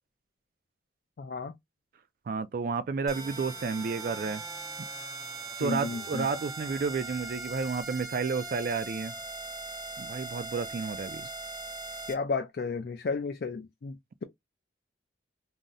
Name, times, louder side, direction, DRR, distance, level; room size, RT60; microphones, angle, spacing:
voice 1, 1.2-1.5 5.5-6.3 12.1-14.0, left 4 dB, 55° left, 0.4 m, -33 dB
voice 2, 2.3-4.4 5.6-9.1 10.0-11.3, right 5 dB, 50° right, 0.3 m, -31 dB
sound 1, 3.1-12.1, right 3 dB, 20° right, 0.6 m, -40 dB
2.6 x 2.0 x 3.6 m
head